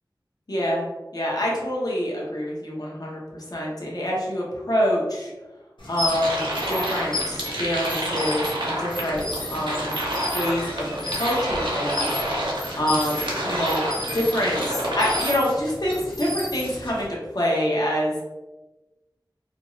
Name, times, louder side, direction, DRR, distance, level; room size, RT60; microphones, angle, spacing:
voice 1, 0.5-0.8 1.1-3.2 3.5-5.3 5.9-9.3 9.5-10.0 10.3-12.1 12.4-13.9 14.1-18.2, equal, 50° left, -5 dB, 0.8 m, -26 dB
sound 1, 5.8-17.1, left 1 dB, 80° left, 0.9 m, -34 dB
sound 2, 6.1-15.3, right 1 dB, 85° right, 0.7 m, -28 dB
2.6 x 2.3 x 3.0 m, 1.1 s
wide cardioid pair, 50°, 8 cm